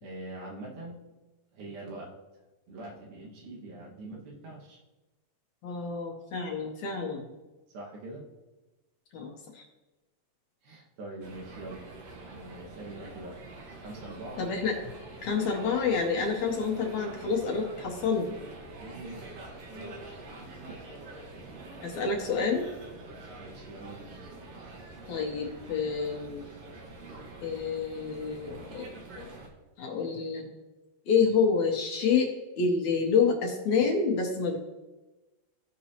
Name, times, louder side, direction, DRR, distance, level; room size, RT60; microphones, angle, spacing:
voice 1, 0.0-1.0 1.5-2.1 2.7-4.8 7.7-8.2 10.6-11.8 12.3-13.4 13.8-14.4 18.7-20.0 20.3-20.8 23.4-24.2, right 2 dB, 85° right, -4 dB, 3.5 m, -43 dB
voice 2, 5.6-7.3 9.1-9.7 14.4-14.8 15.2-18.4 21.8-22.7 25.1-26.4 27.4-28.9 29.2-29.3 29.8-30.5 31.1-34.6, left 5 dB, 70° left, 1 dB, 2.0 m, -28 dB
sound 1, 11.2-29.5, right 2 dB, 55° right, 2.1 m, -46 dB
16.0 x 5.4 x 2.9 m, 1.1 s
omnidirectional pair, 4.1 m